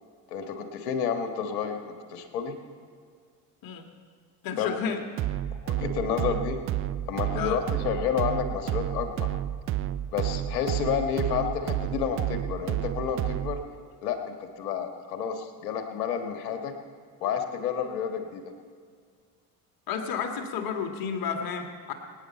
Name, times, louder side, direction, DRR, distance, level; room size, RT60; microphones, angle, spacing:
voice 1, 0.3-2.5 4.6-4.9 5.6-6.6 7.1-9.3 10.1-13.6 14.0-16.7 17.2-18.4, left 7 dB, 60° left, 6 dB, 1.6 m, -30 dB
voice 2, 4.4-5.0 7.4-7.6 19.9-21.9, left 6 dB, 45° left, 5 dB, 2.0 m, -31 dB
sound 1, 5.2-13.7, right 13 dB, 30° right, 0.4 m, -31 dB
23.5 x 9.6 x 4.5 m, 2.1 s
figure-of-eight pair, 60°, 49 cm